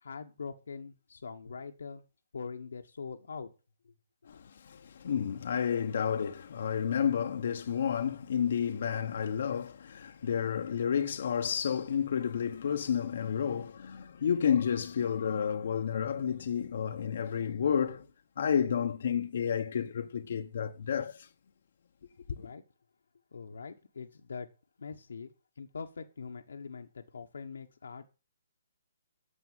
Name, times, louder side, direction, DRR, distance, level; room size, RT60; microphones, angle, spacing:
voice 1, 0.0-2.0 2.3-3.5 3.8-3.9 22.4-22.6 23.3-24.5 24.8-25.3 25.6-28.1, left 5 dB, 80° left, 1.2 m, -43 dB
voice 2, 4.3-18.1 18.4-21.3, left 8 dB, 60° left, 0.9 m, -31 dB
9.9 x 6.9 x 9.0 m
hypercardioid pair, 150°, 0 cm